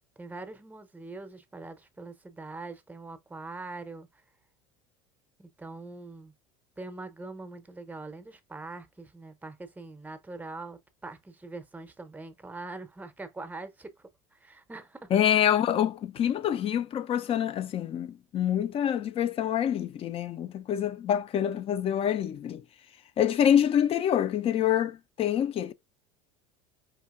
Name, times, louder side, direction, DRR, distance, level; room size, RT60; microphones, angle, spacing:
voice 1, 0.2-4.2 5.4-6.3 6.8-15.2, right 3 dB, 10° right, 0.7 m, -43 dB
voice 2, 15.1-22.6 23.2-25.7, left 10 dB, 40° left, 0.5 m, -26 dB
4.7 x 2.7 x 2.4 m
hypercardioid pair, 85°, 15 cm